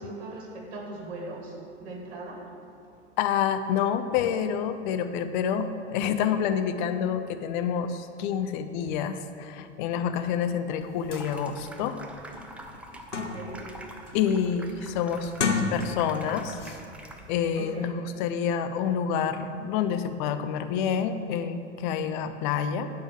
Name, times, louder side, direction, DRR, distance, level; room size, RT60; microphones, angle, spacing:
voice 1, 0.0-1.5 1.8-2.4 13.1-13.7 17.6-18.0, right 2 dB, 60° right, -1 dB, 2.6 m, -39 dB
voice 2, 3.2-12.0 14.1-16.6 17.3-22.9, left 8 dB, 45° left, 9 dB, 0.7 m, -28 dB
sound 1, 10.8-10.9 11.1-11.3 11.8-11.9 12.3-13.7 14.1-14.4 15.2-16.2 16.6-16.8, left 4 dB, 85° left, 0.9 m, -31 dB
Water tap faucet / Sink (filling or washing), 11.0-17.5, right 1 dB, 5° right, 0.3 m, -45 dB
9.5 x 5.2 x 7.4 m, 2.5 s
figure-of-eight pair, 100°, 35 cm